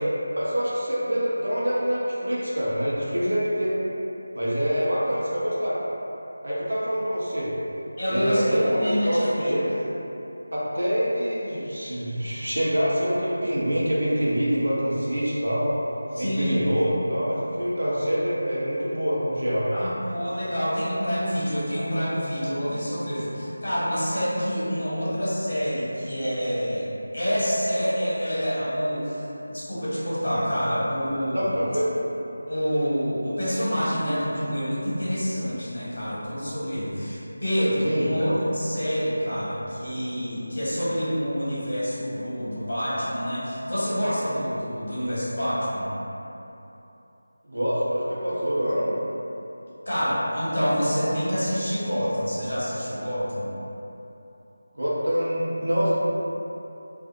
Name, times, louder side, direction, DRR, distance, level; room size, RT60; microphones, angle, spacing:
voice 1, 0.4-3.8 4.3-5.8 6.4-7.5 8.1-9.8 10.5-15.7 16.2-19.7 24.6-24.7 31.3-31.9 37.8-38.1 47.4-48.9 54.7-55.9, equal, 90° right, -8 dB, 0.8 m, -25 dB
voice 2, 8.0-9.5 16.1-16.6 19.7-26.9 27.1-31.5 32.5-45.9 49.8-53.5, equal, 75° left, -9 dB, 1.2 m, -27 dB
2.6 x 2.4 x 2.6 m, 3.0 s
figure-of-eight pair, 175°, 0 cm